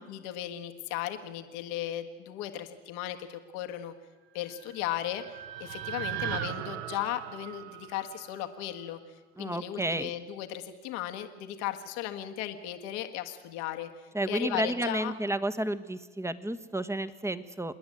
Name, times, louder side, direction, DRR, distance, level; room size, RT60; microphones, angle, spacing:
voice 1, 0.0-3.9 4.3-5.2 5.6-13.9 14.2-15.1, left 12 dB, 75° left, 6 dB, 1.6 m, -36 dB
sound 1, 4.5-8.8, right 11 dB, 70° right, 1.1 m, -38 dB
voice 2, 9.4-10.1 14.1-17.8, right 1 dB, 10° right, 12 dB, 1.2 m, -31 dB
27.5 x 10.5 x 9.9 m, 1.4 s
hypercardioid pair, 70°, 34 cm